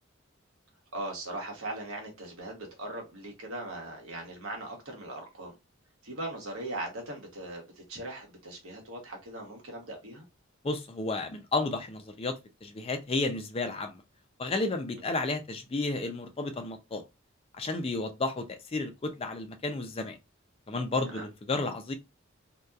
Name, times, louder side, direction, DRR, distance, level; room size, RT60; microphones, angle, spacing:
voice 1, 0.9-5.5 6.0-10.2 15.0-15.1 21.1-21.3, right 2 dB, 90° right, 1.0 m, -39 dB
voice 2, 10.6-14.0 14.4-17.0 17.6-20.2 20.7-21.9, left 3 dB, 30° left, 0.4 m, -32 dB
2.7 x 2.2 x 2.3 m
head